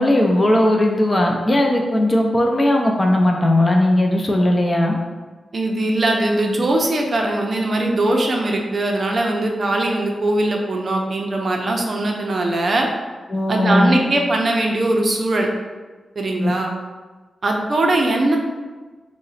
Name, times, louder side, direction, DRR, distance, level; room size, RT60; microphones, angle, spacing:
voice 1, 0.0-5.0 13.3-14.0 16.4-16.5, left 1 dB, 20° left, 1 dB, 0.4 m, -17 dB
voice 2, 5.5-12.9 13.5-15.5 16.2-16.7 17.4-18.4, right 1 dB, 45° right, 1 dB, 0.5 m, -20 dB
3.8 x 2.1 x 3.9 m, 1.3 s
wide cardioid pair, 150°, 0 cm